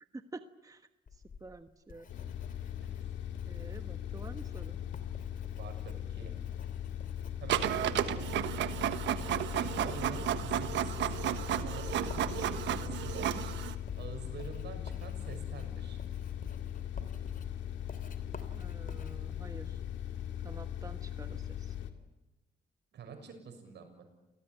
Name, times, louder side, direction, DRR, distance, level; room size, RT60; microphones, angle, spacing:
voice 1, 0.1-0.9 1.4-2.1 3.4-4.8 18.5-19.8 20.4-21.7, right 3 dB, 20° right, 9 dB, 1.3 m, -49 dB
Writing, 1.1-20.6, left 5 dB, 50° left, 3.1 m, -51 dB
sound 1, 2.1-21.9, left 10 dB, 85° left, 2.5 m, -39 dB
voice 2, 5.6-6.3 7.4-8.2 9.5-13.6 14.0-16.0 22.9-24.1, right 5 dB, 70° right, 5 dB, 6.9 m, -47 dB
Printer, 7.5-13.7, right 11 dB, 90° right, 1.4 m, -33 dB
28.5 x 19.0 x 9.4 m, 1.0 s
cardioid pair, 85°, 18 cm